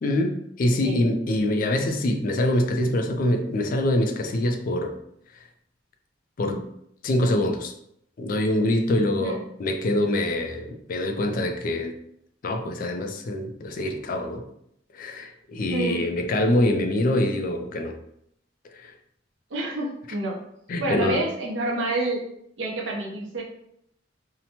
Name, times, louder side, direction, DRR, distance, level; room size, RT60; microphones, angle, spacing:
voice 1, 0.0-4.9 6.4-6.6 7.0-7.7 8.2-11.9 12.4-14.4 14.9-17.9 18.8-18.9 20.7-21.2, left 1 dB, 45° left, 5 dB, 0.3 m, -24 dB
voice 2, 15.7-16.1 19.5-20.4 20.8-22.3 22.6-23.4, right 2 dB, 70° right, -2 dB, 0.7 m, -28 dB
2.8 x 2.1 x 2.8 m, 0.74 s
head